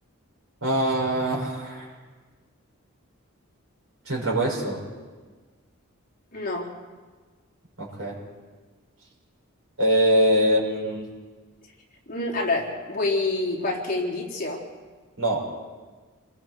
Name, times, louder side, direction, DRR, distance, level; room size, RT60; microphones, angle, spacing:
voice 1, 0.6-1.9 4.0-4.8 7.8-8.2 9.8-11.1 15.2-15.5, equal, 70° right, -2 dB, 6.6 m, -23 dB
voice 2, 6.3-6.7 12.1-14.6, left 2 dB, 35° left, -2 dB, 3.8 m, -27 dB
29.0 x 21.5 x 4.7 m, 1.4 s
head